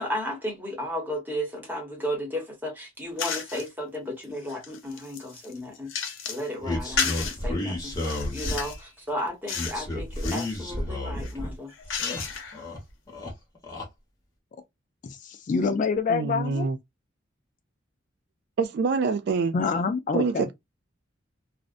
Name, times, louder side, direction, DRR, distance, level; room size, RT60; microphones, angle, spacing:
voice 1, 0.0-5.9 6.3-11.7, equal, 10° right, 1.0 m, -34 dB
sound 1, 3.2-3.7 4.2-6.5 7.0-7.4 7.9-8.8 9.5-9.8 10.1-10.6 11.2-12.6, left 6 dB, 80° left, 0.8 m, -32 dB
sound 2, 6.6-8.8 9.5-11.5 11.8-12.8 13.1-13.9, left 1 dB, 20° left, 0.9 m, -32 dB
voice 2, 15.0-16.7 19.5-20.5, left 5 dB, 40° left, 0.3 m, -26 dB
voice 3, 16.1-16.8 18.6-19.5 20.1-20.5, right 4 dB, 60° right, 0.3 m, -25 dB
2.5 x 2.1 x 2.4 m
head